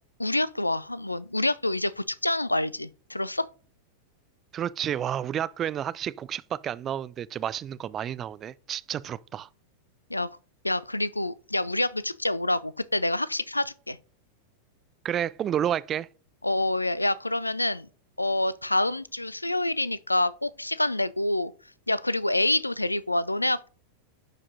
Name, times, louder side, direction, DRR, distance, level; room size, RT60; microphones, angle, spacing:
voice 1, 0.2-3.5 10.1-10.3 10.6-14.0 16.4-17.9 18.2-21.5 21.9-23.7, left 1 dB, 85° left, 0.3 m, -27 dB
voice 2, 4.5-9.5 15.0-16.1, right 10 dB, 30° right, 0.3 m, -30 dB
10.5 x 4.9 x 2.6 m
figure-of-eight pair, 90°, 0 cm